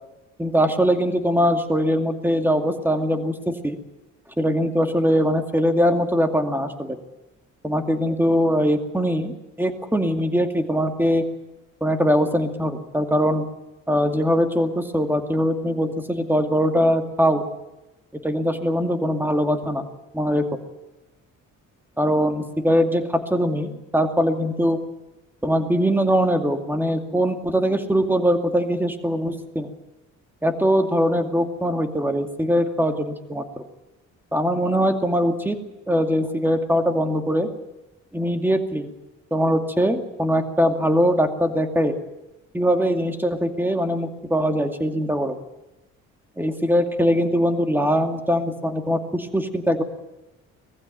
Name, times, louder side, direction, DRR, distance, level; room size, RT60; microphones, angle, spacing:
voice 1, 0.4-3.8 4.4-7.0 7.6-11.2 11.8-13.4 13.9-17.4 18.2-19.8 20.1-20.4 22.0-24.8 25.4-29.7 30.4-33.4 34.3-35.6 35.9-37.5 38.1-38.9 39.3-41.9 42.5-45.4 46.4-49.8, equal, 5° right, 5 dB, 2.4 m, -21 dB
20.0 x 15.0 x 9.1 m, 1.0 s
cardioid pair, 90°, 30 cm